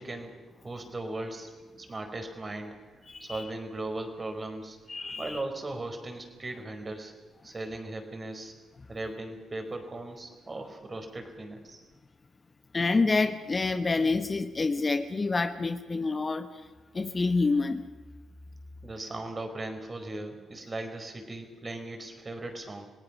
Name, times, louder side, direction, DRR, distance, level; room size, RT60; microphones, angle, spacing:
voice 1, 0.0-1.5 1.8-2.8 3.2-4.8 5.2-7.1 7.4-8.5 8.9-11.8 18.8-22.9, right 2 dB, 35° right, 5 dB, 4.7 m, -38 dB
voice 2, 3.1-3.4 4.9-5.4 12.7-16.5 16.9-17.8, left 3 dB, 35° left, 10 dB, 1.2 m, -27 dB
27.0 x 17.5 x 6.2 m, 1.3 s
supercardioid pair, 55°, 0 cm